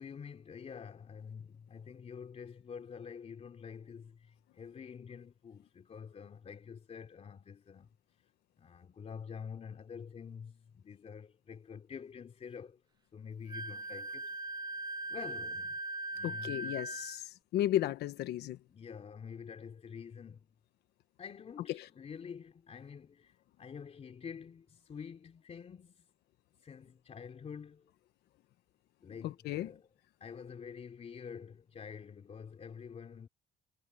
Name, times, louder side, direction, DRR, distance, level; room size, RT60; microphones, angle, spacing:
voice 1, 0.0-7.9 8.6-12.8 13.1-14.3 15.1-15.8 16.1-16.8 18.7-20.5 21.2-26.1 26.6-27.9 29.0-29.9 30.2-33.3, left 6 dB, 40° left, 3.7 m, -47 dB
Wind instrument woodwind instrument, 13.5-17.2, right 2 dB, 25° right, 1.0 m, -40 dB
voice 2, 16.2-18.6 29.2-29.7, left 13 dB, 75° left, 1.1 m, -34 dB
cardioid pair, 110°, 17 cm